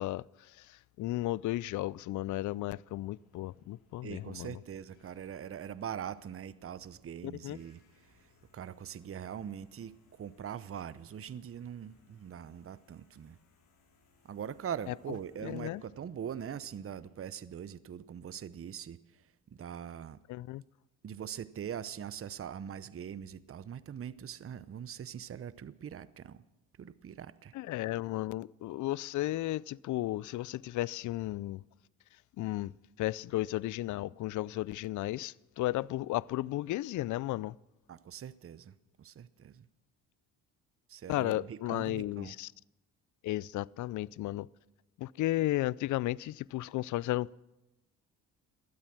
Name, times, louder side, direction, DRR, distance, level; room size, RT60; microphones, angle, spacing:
voice 1, 0.0-4.6 7.2-7.6 14.9-15.0 15.4-15.8 20.3-20.6 27.5-31.6 32.4-32.7 33.0-37.6 41.1-42.5 43.2-44.5 45.0-47.3, left 16 dB, 55° left, 0.4 m, -34 dB
sound 1, 2.8-17.1, left 3 dB, 75° left, 3.8 m, -68 dB
voice 2, 4.0-7.8 8.5-13.4 14.2-19.0 19.5-20.2 21.0-26.4 26.8-27.5 37.9-39.7 40.9-42.3, right 8 dB, 35° right, 0.8 m, -42 dB
18.0 x 12.5 x 6.1 m
supercardioid pair, 55°, 38 cm